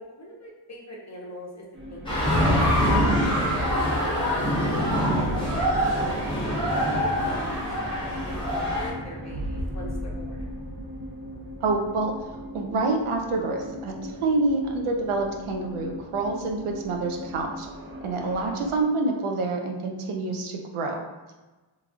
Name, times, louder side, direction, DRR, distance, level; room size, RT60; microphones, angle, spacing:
voice 1, 0.0-1.6 1.9-2.9 3.2-4.6 5.2-10.4, equal, 35° left, -3 dB, 0.6 m, -42 dB
sound 1, 1.7-18.8, equal, 25° right, 0.4 m, -37 dB
sound 2, 2.1-8.9, equal, 10° left, 1.0 m, -24 dB
voice 2, 2.9-3.3 11.6-12.1 12.5-17.7 18.0-21.0, right 3 dB, 80° right, 2 dB, 0.6 m, -27 dB
3.1 x 2.4 x 2.4 m, 1.2 s
wide cardioid pair, 100°, 49 cm